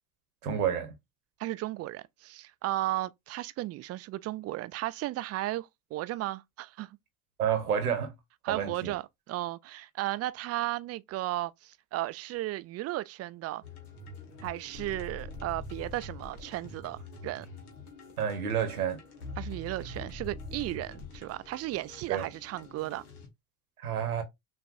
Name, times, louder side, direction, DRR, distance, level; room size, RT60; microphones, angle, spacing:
voice 1, 0.4-0.9 7.4-8.1 8.5-8.9 18.2-19.0 22.1-22.3 23.8-24.2, right 8 dB, 85° right, 1.1 m, -29 dB
voice 2, 1.4-6.9 8.4-13.6 14.4-17.5 19.4-23.0, right 16 dB, 35° right, 0.4 m, -35 dB
sound 1, 13.6-23.3, left 2 dB, 80° left, 1.2 m, -44 dB
6.2 x 2.5 x 2.5 m
figure-of-eight pair, 60°, 43 cm